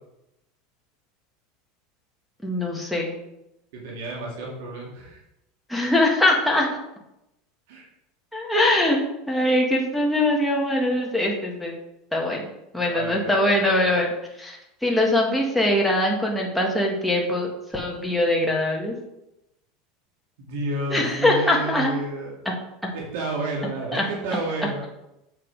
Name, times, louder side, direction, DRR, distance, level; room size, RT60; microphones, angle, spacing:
voice 1, 2.4-3.2 5.7-6.7 8.3-9.0 9.3-11.7 12.1-12.4 12.7-14.1 14.4-14.6 14.8-18.9 20.9-21.9 22.4-22.5 23.9-24.0, left 1 dB, ahead, -2 dB, 1.7 m, -22 dB
voice 2, 3.7-5.2 7.7-7.8 12.9-13.9 20.4-22.5 22.9-24.8, right 2 dB, 80° right, -2 dB, 2.1 m, -31 dB
7.4 x 6.0 x 4.7 m, 0.88 s
supercardioid pair, 140°, 0 cm